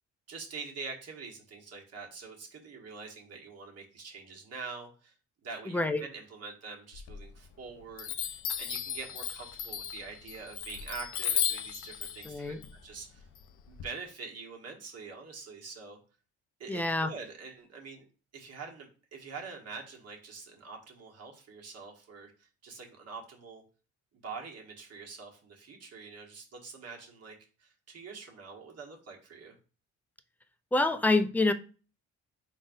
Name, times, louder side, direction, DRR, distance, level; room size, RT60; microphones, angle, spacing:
voice 1, 0.3-5.1 5.4-12.5 12.8-13.3 13.7-16.0 16.6-18.0 18.3-23.6 24.2-29.5, right 4 dB, 55° right, 1.3 m, -45 dB
voice 2, 5.7-6.0 12.3-12.6 16.7-17.1 30.7-31.5, left 2 dB, 5° left, 0.4 m, -26 dB
Chime, 6.9-7.6 8.0-13.8, left 9 dB, 80° left, 0.6 m, -35 dB
4.8 x 3.9 x 2.6 m
cardioid pair, 90°, 30 cm